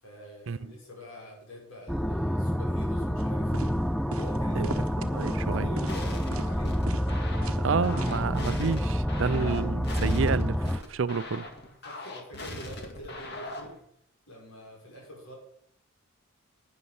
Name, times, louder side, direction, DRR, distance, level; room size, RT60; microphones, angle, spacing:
voice 1, 0.0-3.8 4.1-6.8 11.8-13.7 14.3-15.3, equal, 75° left, 6.3 m, -44 dB
sound 1, 1.9-10.8, equal, ahead, 0.4 m, -28 dB
sound 2, 3.2-3.3 3.5-3.7 4.1-4.4 4.6-5.4 5.8-6.0 6.3-6.5 6.9-7.1 7.4-7.6 8.0-8.2 8.5-8.6, right 3 dB, 85° right, 1.0 m, -39 dB
voice 2, 5.1-5.7 7.6-11.5, right 5 dB, 60° right, 0.5 m, -30 dB
sound 3, 5.8-13.8, left 2 dB, 50° left, 2.1 m, -41 dB
12.0 x 9.8 x 5.5 m
head